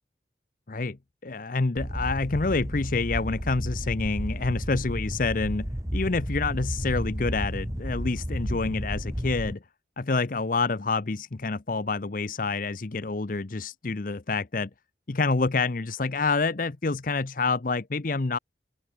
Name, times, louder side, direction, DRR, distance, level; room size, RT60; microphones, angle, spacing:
voice 1, 1.2-9.6 10.0-14.7 15.1-18.4, left 3 dB, 50° left, 0.7 m, -27 dB
sound 1, 1.8-9.5, equal, 20° right, 3.3 m, -32 dB
open air
head